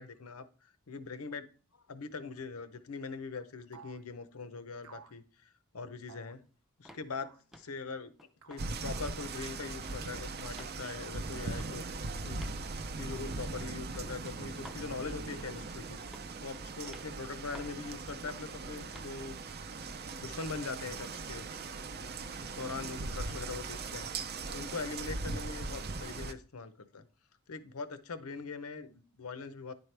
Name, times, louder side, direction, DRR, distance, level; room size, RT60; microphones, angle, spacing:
voice 1, 0.0-1.5 1.9-5.5 5.7-6.5 6.8-7.3 7.6-8.1 8.5-11.8 12.2-16.0 16.4-19.4 20.2-21.5 22.0-27.0 27.5-29.7, left 4 dB, 85° left, 12 dB, 0.7 m, -42 dB
sound 1, 3.7-4.1 4.8-5.2 6.1-6.4 7.2-7.5 8.4-8.7 10.1-10.7 11.5-12.2, right 6 dB, 85° right, 0.7 m, -55 dB
sound 2, 6.9-7.1 7.5-7.8 8.2-8.7 9.0-9.1 9.4-10.1 10.5-10.8 11.5-11.7 12.4-12.6 13.2-13.4 13.9-14.1 14.6-14.9 15.4-15.7 16.1-16.4 16.9-17.1 17.5-17.8 18.3-18.5 18.9-19.1, equal, ahead, 0.5 m, -53 dB
sound 3, 8.6-26.3, right 3 dB, 50° right, 0.6 m, -40 dB
10.5 x 4.5 x 3.3 m, 0.40 s
head